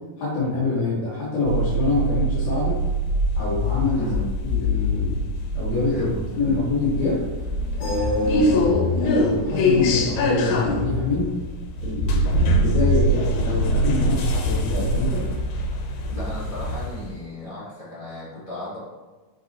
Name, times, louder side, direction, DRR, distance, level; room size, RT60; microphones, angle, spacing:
voice 1, 0.2-2.7 3.4-4.0 4.4-5.2 5.5-6.1 6.4-7.2 7.8-11.3 11.8-15.2, left 3 dB, 60° left, -9 dB, 2.3 m, -25 dB
sound 1, 1.5-17.1, equal, 90° left, 2.6 m, -23 dB
voice 2, 5.9-6.5 16.1-18.8, left 1 dB, 25° left, -11 dB, 1.0 m, -35 dB
6.1 x 5.4 x 2.8 m, 1.2 s
omnidirectional pair, 4.3 m